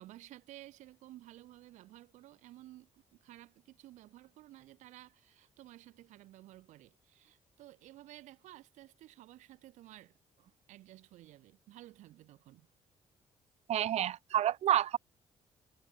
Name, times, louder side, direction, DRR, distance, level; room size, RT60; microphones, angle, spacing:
voice 1, 0.0-10.2 10.7-12.7, right 15 dB, 90° right, 2.1 m, -54 dB
voice 2, 13.7-15.0, right 11 dB, 65° right, 0.5 m, -29 dB
cardioid pair, 85°, 12 cm